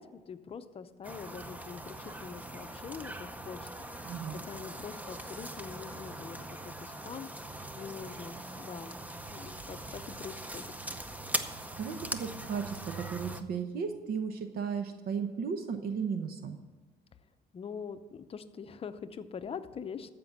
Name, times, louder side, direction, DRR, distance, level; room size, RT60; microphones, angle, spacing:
voice 1, 0.0-3.7 4.0-7.3 7.7-8.9 9.3-10.7 17.5-20.1, left 6 dB, 35° left, 11 dB, 0.7 m, -44 dB
sound 1, 1.0-13.4, right 1 dB, 10° right, 0.7 m, -41 dB
voice 2, 4.0-4.4 11.7-16.6, right 6 dB, 60° right, 7 dB, 0.9 m, -35 dB
14.0 x 5.2 x 7.3 m, 1.3 s
cardioid pair, 110°, 17 cm